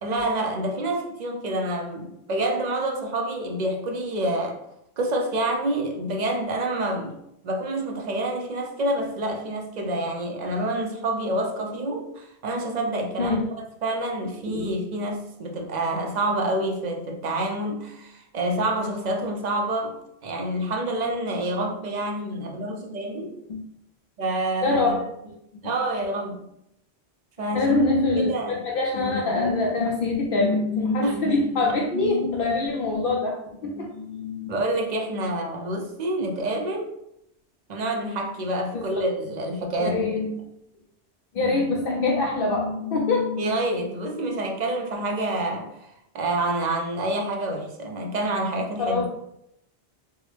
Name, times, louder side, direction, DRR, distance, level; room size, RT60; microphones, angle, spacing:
voice 1, 0.0-4.6 5.0-7.2 7.4-13.4 13.8-20.0 20.2-23.3 24.2-24.9 25.6-26.4 27.4-27.7 28.2-28.6 31.0-31.3 34.5-36.9 37.7-40.3 41.4-41.6 43.4-45.9 46.1-49.1, right 1 dB, 50° right, 2 dB, 0.6 m, -27 dB
voice 2, 24.6-25.3 27.5-33.4 33.6-34.5 38.7-38.8 39.8-40.3 41.3-43.6 48.8-49.1, left 3 dB, 65° left, -2 dB, 0.7 m, -24 dB
4.5 x 2.1 x 3.1 m, 0.79 s
omnidirectional pair, 1.1 m